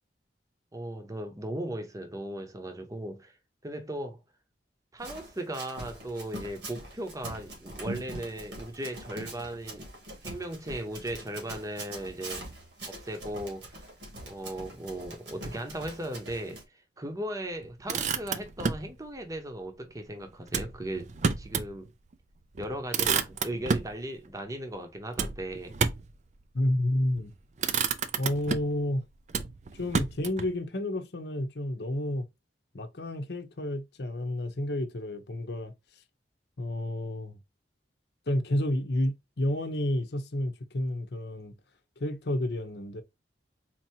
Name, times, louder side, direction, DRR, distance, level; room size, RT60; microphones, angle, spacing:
voice 1, 0.7-3.4 3.6-4.2 4.9-9.9 10.2-12.5 12.9-13.8 14.2-16.6 17.0-21.1 21.4-21.9 22.6-25.7, right 1 dB, 20° right, 0.8 m, -37 dB
Run, 5.0-16.6, right 1 dB, 80° right, 1.9 m, -43 dB
Motor vehicle (road), 17.6-18.9 20.5-21.7 22.1-22.2 22.6-24.0 25.2-26.2 27.0-27.3 27.6-28.8 29.3-30.5, right 5 dB, 40° right, 0.4 m, -30 dB
voice 2, 26.5-27.3 28.2-29.0 29.7-32.3 32.7-36.0 36.6-37.4 38.3-41.5 42.0-43.0, left 1 dB, 65° left, 0.7 m, -30 dB
4.5 x 2.7 x 2.7 m
head